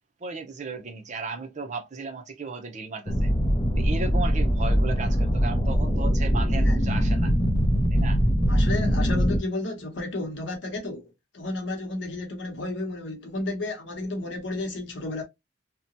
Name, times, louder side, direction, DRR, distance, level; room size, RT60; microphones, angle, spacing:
voice 1, 0.2-3.3 3.8-7.3 7.9-8.2, right 3 dB, 40° right, 0.6 m, -35 dB
sound 1, 3.1-9.4, equal, 30° left, 0.6 m, -22 dB
voice 2, 8.5-11.1 11.3-15.2, left 2 dB, 70° left, 0.9 m, -32 dB
2.8 x 2.1 x 2.6 m
head